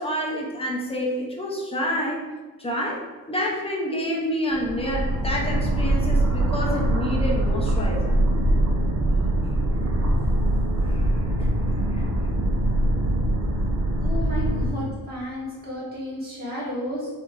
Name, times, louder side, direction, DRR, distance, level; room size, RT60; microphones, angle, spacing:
voice 1, 0.0-2.2 2.6-3.0 3.3-8.1 10.8-11.6 11.9-12.1, equal, 15° left, -2 dB, 0.4 m, -28 dB
sound 1, 4.5-14.7, right 1 dB, 55° right, 0.6 m, -23 dB
voice 2, 14.0-17.1, equal, 25° right, -7 dB, 1.2 m, -32 dB
3.2 x 2.4 x 2.5 m, 1.3 s
wide cardioid pair, 155°, 37 cm